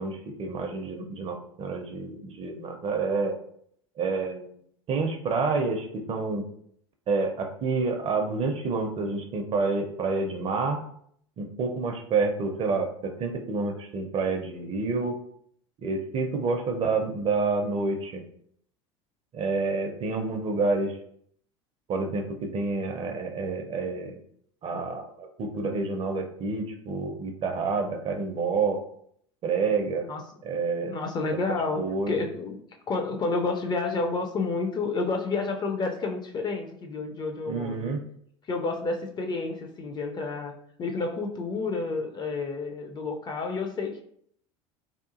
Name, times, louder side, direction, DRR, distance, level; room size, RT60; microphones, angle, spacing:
voice 1, 0.0-3.4 4.0-4.5 4.9-6.4 7.1-10.8 11.4-15.2 15.8-18.2 19.3-21.0 21.9-24.2 24.6-28.8 29.4-30.1 30.4-30.9 31.8-32.3 37.5-38.0, right 4 dB, 35° right, 4 dB, 0.5 m, -28 dB
voice 2, 30.8-31.8 32.1-32.6 32.9-38.0 38.5-40.5 40.8-44.0, left 3 dB, 25° left, 4 dB, 0.4 m, -30 dB
2.8 x 2.3 x 2.4 m, 0.66 s
figure-of-eight pair, 70°, 16 cm